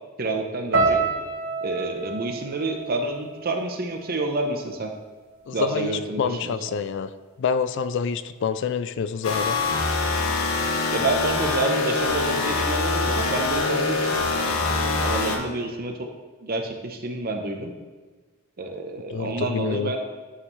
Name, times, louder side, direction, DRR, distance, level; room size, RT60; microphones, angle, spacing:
voice 1, 0.2-1.0 1.6-4.9 5.5-6.5 10.9-16.1 16.4-17.7 18.6-20.0, right 2 dB, 45° right, 4 dB, 0.8 m, -28 dB
sound 1, 0.7-4.9 5.2-6.0 6.6-6.8, right 4 dB, 70° right, 1.6 m, -29 dB
voice 2, 5.5-7.1 7.4-9.6 19.1-19.9, left 6 dB, 60° left, 13 dB, 0.3 m, -27 dB
sound 2, 9.2-15.4, left 3 dB, 85° left, 1.1 m, -24 dB
9.9 x 5.4 x 3.2 m, 1.3 s
head